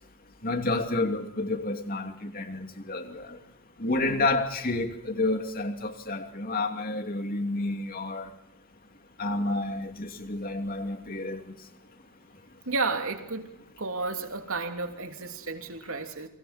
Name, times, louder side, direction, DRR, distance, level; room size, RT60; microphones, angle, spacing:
voice 1, 0.4-3.4 3.8-8.3 9.2-11.5, left 2 dB, 40° left, 2.8 m, -30 dB
voice 2, 12.6-16.3, right 3 dB, 70° right, 3.1 m, -32 dB
30.0 x 25.0 x 4.4 m
head